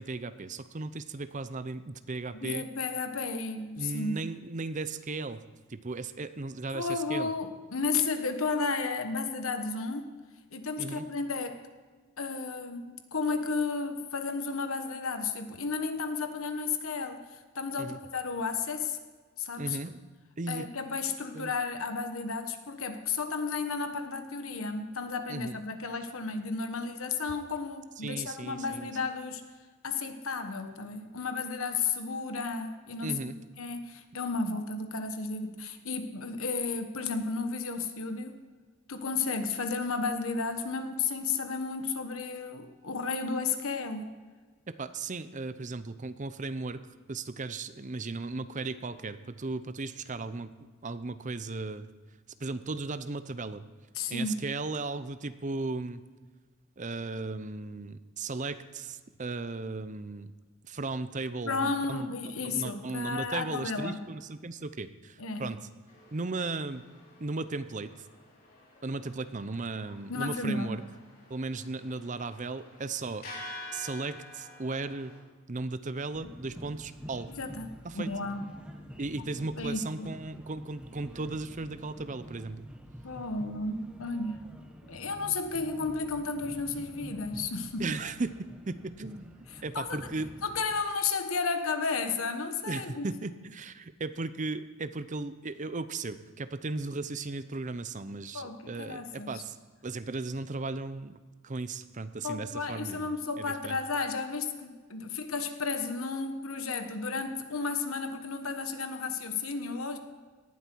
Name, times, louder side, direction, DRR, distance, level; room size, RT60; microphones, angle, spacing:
voice 1, 0.0-2.7 3.8-5.4 5.7-7.3 10.8-11.1 17.8-18.0 19.6-20.0 20.4-20.7 21.3-21.5 25.3-25.6 28.0-28.9 33.0-33.4 44.7-46.8 47.1-51.9 52.4-53.6 54.1-56.0 56.8-60.3 60.7-62.1 62.4-65.6 66.1-66.8 67.2-67.9 68.8-70.8 71.3-73.3 73.7-75.1 75.5-77.3 77.8-78.1 79.0-82.6 87.8-89.3 89.6-90.3 92.7-99.6 99.8-103.8, right 3 dB, 35° right, 12 dB, 0.6 m, -36 dB
voice 2, 2.3-4.2 6.7-10.0 10.5-11.6 12.2-17.3 17.5-19.0 19.4-19.8 20.5-29.4 29.8-38.4 38.9-44.1 53.9-54.4 61.5-64.0 65.2-65.5 70.1-70.8 77.4-78.4 79.6-80.1 83.0-84.4 84.9-88.0 89.5-90.0 90.4-93.1 98.3-99.4 102.2-110.0, left 4 dB, 70° left, 8 dB, 1.2 m, -33 dB
sound 1, 65.9-75.2, left 2 dB, 45° left, 3.9 m, -49 dB
sound 2, 76.1-90.8, equal, 5° right, 1.3 m, -48 dB
18.0 x 11.5 x 4.6 m, 1.4 s
head